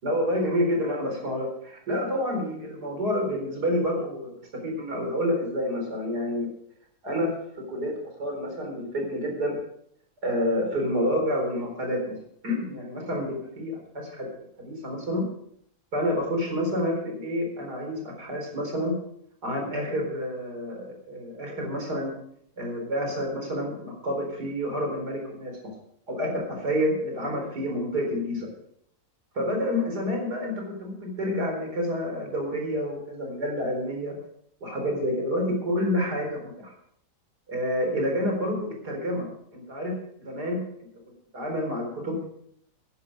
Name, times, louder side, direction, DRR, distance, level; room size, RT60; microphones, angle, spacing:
voice 1, 0.0-6.5 7.0-7.9 8.2-9.6 10.2-12.2 12.4-14.3 14.6-15.2 15.9-18.9 19.4-22.1 22.6-25.6 26.1-28.5 29.3-34.1 34.6-36.7 37.5-39.3 39.5-39.9 40.2-40.9 41.3-42.2, equal, 85° right, 2 dB, 4.7 m, -28 dB
14.0 x 11.0 x 5.2 m, 0.69 s
omnidirectional pair, 1.7 m